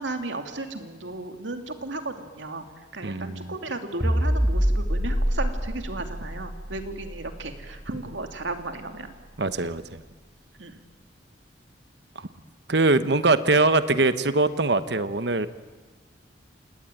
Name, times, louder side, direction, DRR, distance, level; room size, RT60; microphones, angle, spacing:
voice 1, 0.0-2.6 2.9-9.1 10.6-10.7, right 2 dB, 85° right, 5 dB, 2.7 m, -34 dB
voice 2, 3.0-3.5 9.4-10.0 12.7-15.5, right 3 dB, 65° right, 12 dB, 1.1 m, -22 dB
sound 1, 4.0-8.5, equal, 10° right, 3.8 m, -26 dB
28.5 x 19.0 x 9.2 m, 1.3 s
head